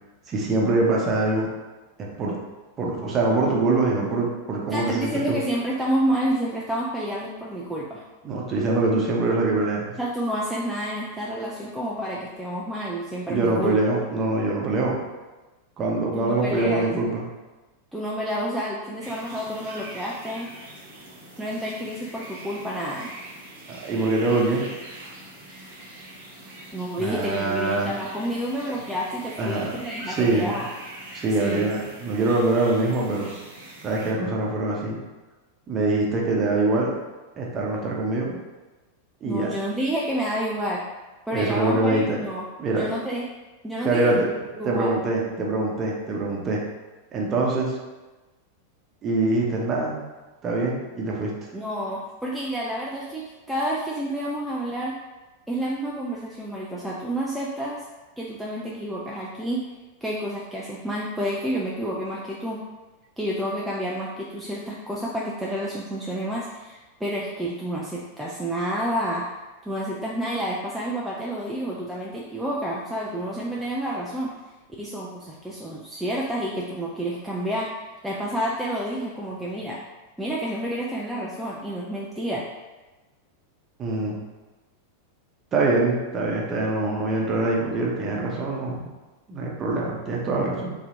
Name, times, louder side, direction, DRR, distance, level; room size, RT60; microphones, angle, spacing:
voice 1, 0.3-1.5 2.2-2.3 2.8-5.4 8.2-9.9 13.3-15.0 15.8-17.2 23.7-24.6 27.0-27.9 29.4-29.7 30.1-30.6 31.1-33.3 33.8-35.0 35.7-36.9 37.4-38.4 39.2-39.5 41.3-42.2 42.6-42.8 43.8-44.3 44.6-46.6 47.1-47.8 49.0-50.1 50.4-51.3 83.8-84.2 85.5-88.9 89.3-90.7, right 2 dB, 25° right, -3 dB, 0.9 m, -24 dB
voice 2, 4.7-8.0 10.0-13.8 16.1-16.9 17.9-20.5 21.4-23.1 26.7-30.7 31.4-31.7 39.2-40.8 41.3-42.4 42.7-43.3 43.6-44.1 44.5-44.9 51.5-55.0 55.5-57.8 58.2-59.6 60.0-62.6 63.2-69.3 69.6-74.3 74.8-77.8 78.0-79.8 80.2-82.5, equal, 5° right, -5 dB, 0.4 m, -29 dB
sound 1, 19.0-34.1, right 1 dB, 55° right, 1.0 m, -43 dB
3.2 x 2.9 x 3.8 m, 1.2 s
figure-of-eight pair, 90°, 0 cm